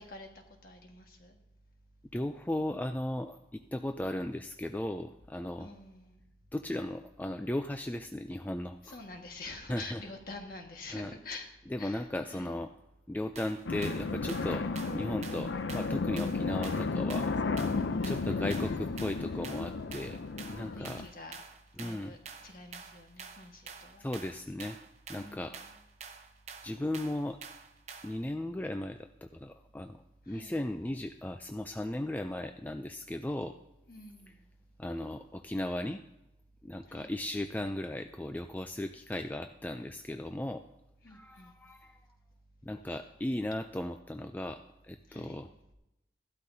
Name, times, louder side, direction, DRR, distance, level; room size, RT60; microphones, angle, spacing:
voice 1, 0.0-1.4 5.6-6.2 8.8-11.5 11.8-12.5 17.7-18.4 20.7-21.4 21.7-24.0 25.1-25.8 30.3-30.6 33.9-34.3 36.9-37.1 41.0-41.5 45.1-45.4, left 2 dB, 50° left, 3 dB, 1.5 m, -47 dB
voice 2, 2.1-5.7 6.5-9.0 9.7-10.0 10.9-11.1 11.7-12.7 13.1-17.3 18.0-20.2 20.5-21.0 21.8-22.1 24.0-24.8 25.1-25.6 26.6-27.4 28.0-30.0 30.3-33.6 34.8-36.0 36.6-40.6 41.1-42.0 42.6-45.5, left 1 dB, 10° left, 7 dB, 0.3 m, -36 dB
sound 1, 13.4-28.3, right 5 dB, 35° right, 0.8 m, -48 dB
sound 2, 13.7-21.1, left 4 dB, 80° left, 0.5 m, -33 dB
15.0 x 12.0 x 2.7 m, 0.89 s
head